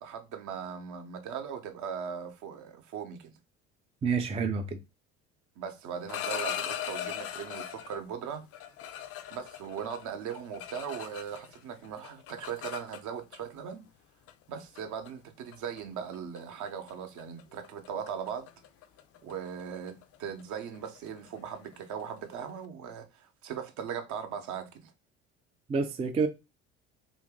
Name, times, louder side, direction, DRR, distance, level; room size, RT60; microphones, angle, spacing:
voice 1, 0.0-3.3 5.6-8.5 9.3-13.8 14.5-18.5 19.2-24.9, right 7 dB, 50° right, 0.8 m, -39 dB
voice 2, 4.0-4.8 25.7-26.3, right 5 dB, 15° right, 0.4 m, -28 dB
sound 1, 5.9-8.0 8.5-11.6 11.8-13.4 14.3-14.4 14.8-15.1 15.5-15.8 16.1-16.4 16.7-16.9 17.2-22.6, left 10 dB, 40° left, 0.5 m, -40 dB
2.8 x 2.6 x 3.5 m
hypercardioid pair, 60°, 37 cm